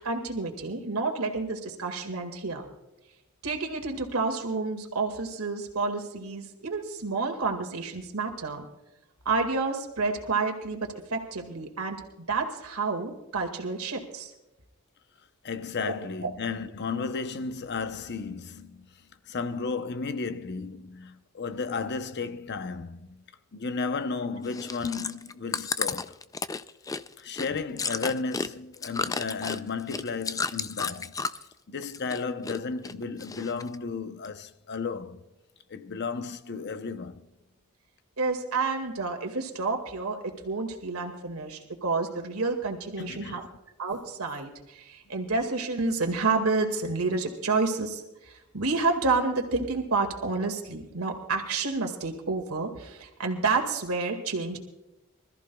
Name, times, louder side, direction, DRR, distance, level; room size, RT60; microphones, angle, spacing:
voice 1, 0.0-2.7 3.4-8.6 9.3-12.0 12.3-14.3 15.8-16.3 38.2-43.5 43.8-54.6, right 3 dB, 85° right, 2.0 m, -29 dB
voice 2, 15.4-18.9 19.3-23.2 23.5-26.2 27.2-31.2 31.7-35.2 35.7-37.3 43.0-43.4, left 4 dB, 50° left, 0.8 m, -34 dB
Chewing mastication, 24.5-31.5 31.8-32.6 32.8-33.8 34.2-34.3, left 4 dB, 15° left, 0.4 m, -32 dB
25.5 x 14.0 x 2.3 m
head